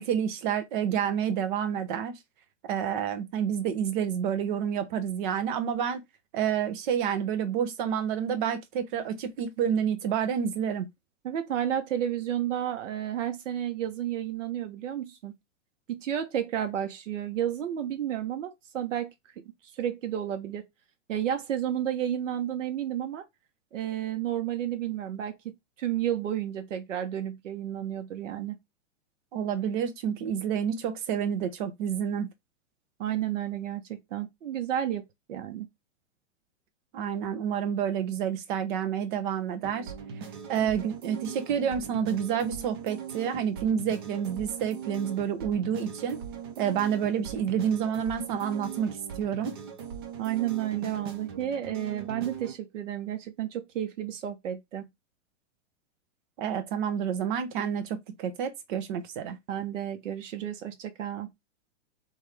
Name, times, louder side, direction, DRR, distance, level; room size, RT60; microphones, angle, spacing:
voice 1, 0.0-2.2 2.7-6.0 6.3-10.9 29.3-32.3 36.9-39.9 40.5-46.2 46.6-49.6 56.4-59.4, right 8 dB, 45° right, 0.9 m, -29 dB
voice 2, 11.2-15.3 15.9-19.1 19.8-20.7 21.1-23.3 23.7-28.6 33.0-35.0 35.3-35.7 50.2-54.8 59.5-61.3, right 10 dB, 80° right, 1.1 m, -31 dB
sound 1, 39.6-52.6, right 7 dB, 20° right, 0.3 m, -40 dB
3.5 x 3.3 x 3.3 m
hypercardioid pair, 155°, 37 cm